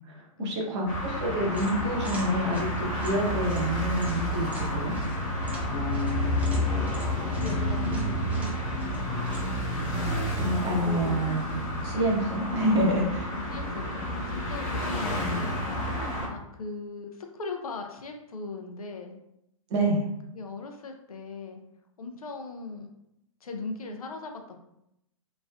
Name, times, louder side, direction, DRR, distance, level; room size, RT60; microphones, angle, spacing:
voice 1, 0.0-4.9 10.3-13.3 19.7-20.1, right 1 dB, 55° right, -1 dB, 1.0 m, -28 dB
sound 1, 0.9-16.3, equal, 35° left, 0.9 m, -30 dB
sound 2, 1.5-9.7, right 1 dB, 10° right, 0.5 m, -46 dB
Bass guitar, 5.7-8.7, left 5 dB, 60° left, 1.0 m, -38 dB
voice 2, 7.3-8.6 10.4-11.3 13.3-15.6 16.3-19.2 20.3-21.6 22.0-22.9 23.4-24.6, left 4 dB, 85° left, 4 dB, 0.5 m, -38 dB
3.1 x 2.5 x 2.3 m, 0.82 s
hypercardioid pair, 120°, 18 cm